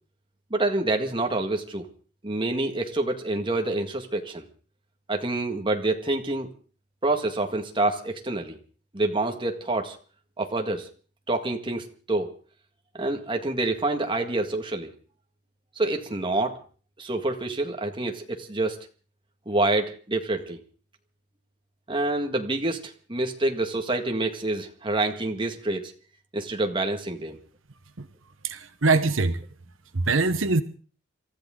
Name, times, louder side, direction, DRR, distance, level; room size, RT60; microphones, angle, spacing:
voice 1, 0.5-1.9 2.2-4.5 5.1-6.5 7.0-8.6 8.9-10.0 10.4-10.9 11.3-12.3 12.9-14.9 15.8-16.6 17.0-18.8 19.5-20.6 21.9-25.9 26.3-27.4, right 2 dB, 25° right, 4 dB, 1.8 m, -27 dB
voice 2, 28.4-29.4 29.9-30.6, right 3 dB, 75° right, 10 dB, 1.0 m, -23 dB
28.0 x 13.5 x 3.8 m, 0.41 s
head